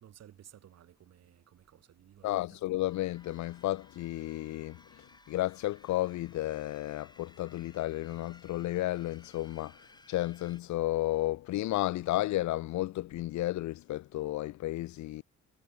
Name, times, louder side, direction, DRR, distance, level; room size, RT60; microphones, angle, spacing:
voice 1, 0.0-2.4, right 11 dB, 60° right, 1.3 m, -56 dB
voice 2, 2.2-15.2, left 16 dB, 70° left, 0.6 m, -33 dB
sound 1, 2.8-10.6, left 2 dB, 15° left, 2.3 m, -60 dB
cardioid pair, 90°, 30 cm